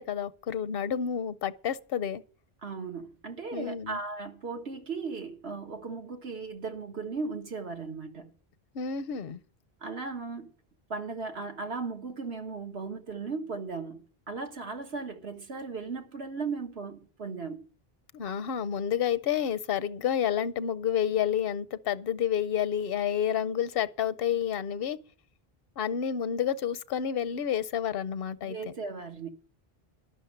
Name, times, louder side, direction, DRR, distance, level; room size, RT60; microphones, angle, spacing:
voice 1, 0.0-2.2 3.5-4.0 8.7-9.4 18.1-25.0 25.8-28.7, left 9 dB, 70° left, 0.9 m, -30 dB
voice 2, 2.6-8.3 9.8-10.5 10.9-17.7 28.4-29.3, right 4 dB, 85° right, 1.8 m, -37 dB
12.0 x 6.3 x 9.2 m
omnidirectional pair, 1.0 m